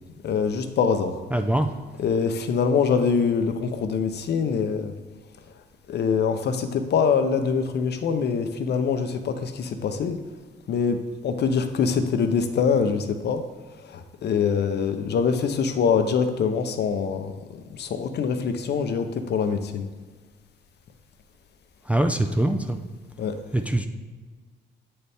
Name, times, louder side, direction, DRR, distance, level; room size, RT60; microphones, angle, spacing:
voice 1, 0.2-1.2 2.0-4.9 5.9-10.2 10.7-13.5 13.8-19.9 23.2-23.4, left 6 dB, 60° left, 8 dB, 0.6 m, -24 dB
voice 2, 1.3-1.7 21.9-22.8 23.5-23.9, right 1 dB, 5° right, 6 dB, 0.4 m, -23 dB
7.6 x 4.2 x 3.4 m, 1.4 s
cardioid pair, 90°, 20 cm